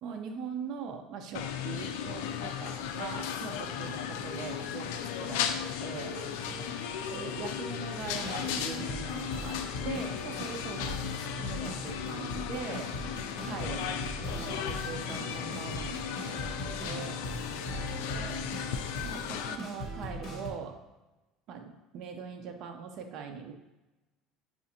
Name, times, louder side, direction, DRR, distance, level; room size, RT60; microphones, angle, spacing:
voice 1, 0.0-6.1 7.1-9.6 9.8-12.9 13.5-17.1 18.1-18.4 19.0-20.8 21.5-23.5, right 6 dB, 55° right, 4 dB, 0.5 m, -41 dB
sound 1, 1.3-19.6, left 8 dB, 90° left, 0.3 m, -36 dB
voice 2, 6.0-6.8 16.9-18.9, right 1 dB, 25° right, 2 dB, 0.7 m, -48 dB
sound 2, 8.0-20.5, equal, 35° left, 1.3 m, -40 dB
6.9 x 2.5 x 2.7 m, 1.0 s
cardioid pair, 125°, 0 cm